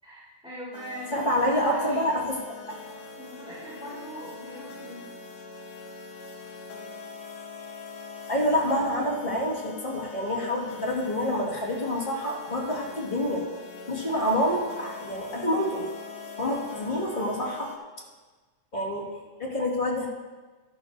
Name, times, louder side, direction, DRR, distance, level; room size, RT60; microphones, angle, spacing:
voice 1, 0.0-2.1 3.2-5.1, equal, ahead, -10 dB, 3.1 m, -40 dB
sound 1, 0.7-17.8, left 4 dB, 60° left, 1.5 m, -43 dB
voice 2, 1.1-2.4 8.3-13.4 13.9-15.8 16.4-17.7 18.7-20.1, equal, 20° left, -4 dB, 1.6 m, -27 dB
13.0 x 12.0 x 2.7 m, 1.3 s
omnidirectional pair, 3.4 m